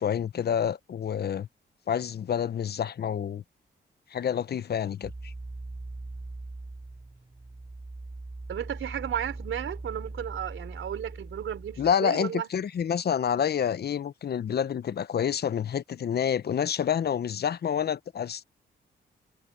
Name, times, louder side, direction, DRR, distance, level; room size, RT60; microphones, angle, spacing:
voice 1, 0.0-1.5 1.9-3.4 4.1-5.3 11.8-18.4, left 8 dB, 55° left, 0.7 m, -28 dB
sound 1, 5.0-11.9, right 2 dB, 20° right, 2.2 m, -41 dB
voice 2, 8.5-12.5, right 10 dB, 85° right, 4.3 m, -33 dB
cardioid pair, 80°, 20 cm